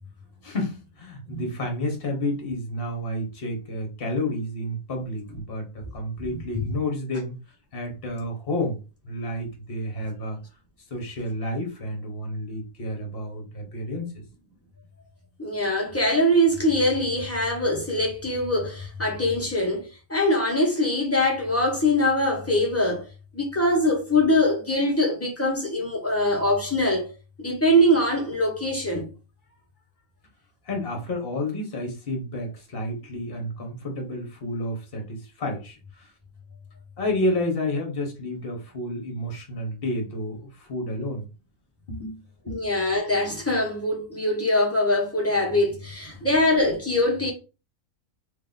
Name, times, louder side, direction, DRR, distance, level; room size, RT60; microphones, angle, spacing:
voice 1, 0.4-7.4 7.7-10.4 10.9-14.2 30.6-36.1 37.0-41.3 41.9-42.2 42.5-42.7 46.1-46.3, left 1 dB, 45° left, 1.3 m, -30 dB
voice 2, 15.4-19.8 20.1-23.1 23.3-27.1 27.4-29.1 42.5-47.3, left 1 dB, 10° left, 1.2 m, -23 dB
3.2 x 2.8 x 3.9 m
omnidirectional pair, 1.5 m